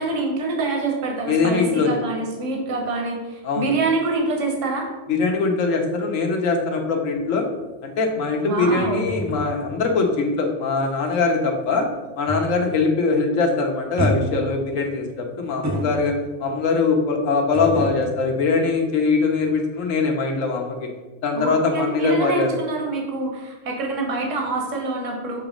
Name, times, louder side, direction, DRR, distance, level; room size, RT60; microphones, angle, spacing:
voice 1, 0.0-4.9 8.4-9.1 21.3-25.5, right 3 dB, 70° right, 1 dB, 1.4 m, -25 dB
voice 2, 1.3-2.0 3.4-3.7 5.1-7.5 7.8-11.9 12.2-20.9 21.2-22.5, left 4 dB, 75° left, 3 dB, 1.3 m, -22 dB
sound 1, 7.2-12.8 13.1-13.5 14.0-16.5 17.5-19.5 19.7-19.9, equal, 15° right, 0.6 m, -31 dB
7.1 x 3.0 x 5.1 m, 1.2 s
omnidirectional pair, 1.4 m